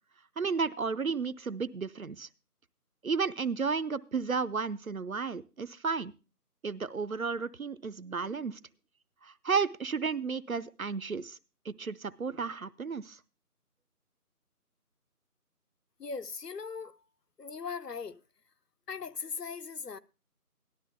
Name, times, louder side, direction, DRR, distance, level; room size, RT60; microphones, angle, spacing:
voice 1, 0.4-2.3 3.0-6.1 6.6-8.6 9.2-11.4 11.7-13.2, right 5 dB, 65° right, 0.7 m, -33 dB
voice 2, 16.0-17.0 17.4-18.2 18.9-20.0, left 5 dB, 90° left, 0.8 m, -39 dB
13.5 x 12.0 x 3.3 m
figure-of-eight pair, 175°, 46 cm